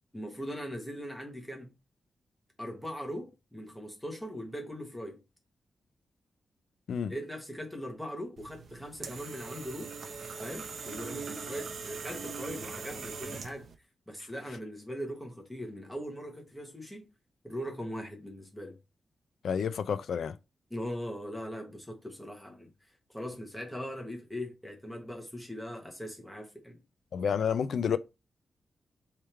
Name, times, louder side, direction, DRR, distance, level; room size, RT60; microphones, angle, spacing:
voice 1, 0.1-1.7 2.6-5.2 7.1-9.9 10.4-13.7 14.1-17.1 17.4-18.8 20.7-22.7 23.1-26.8, equal, ahead, 1.2 m, -40 dB
sound 1, 8.4-13.7, right 5 dB, 65° right, 0.9 m, -41 dB
voice 2, 19.4-20.3 27.1-28.0, left 7 dB, 85° left, 0.4 m, -29 dB
3.6 x 3.2 x 4.3 m
wide cardioid pair, 155°, 0 cm